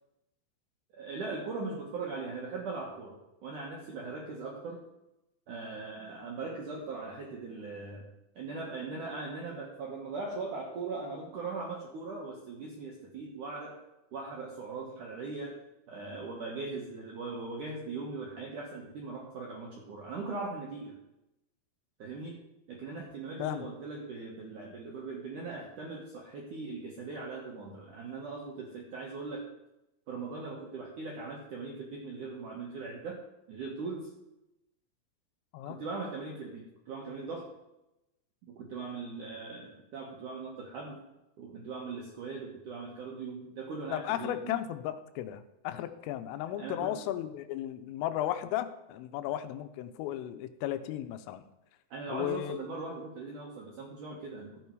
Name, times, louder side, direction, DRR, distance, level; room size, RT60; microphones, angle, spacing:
voice 1, 0.9-4.8 5.5-8.1 8.4-13.8 14.1-15.6 15.9-21.0 22.0-22.4 22.7-29.5 30.1-33.2 33.5-34.1 35.6-37.5 38.5-41.0 41.4-44.5 46.6-46.9 51.9-54.7, right 3 dB, 75° right, -1 dB, 1.9 m, -40 dB
voice 2, 43.9-51.4 52.1-52.6, left 12 dB, 85° left, 10 dB, 3.3 m, -35 dB
13.5 x 8.9 x 4.7 m, 0.91 s
omnidirectional pair, 5.7 m